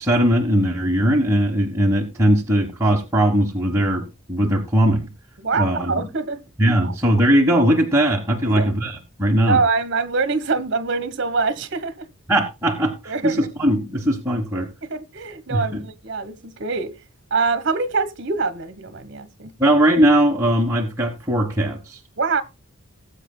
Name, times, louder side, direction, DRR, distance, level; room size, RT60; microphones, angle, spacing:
voice 1, 0.0-5.1 5.5-6.1 6.6-9.6 12.3-14.7 15.5-15.8 19.6-22.0, right 1 dB, 15° right, 1.3 m, -19 dB
voice 2, 5.4-6.4 6.8-6.9 8.5-8.7 9.5-12.1 13.1-13.5 14.8-16.9 17.3-19.5 22.2-22.4, right 4 dB, 50° right, 1.2 m, -24 dB
19.0 x 7.8 x 2.2 m
head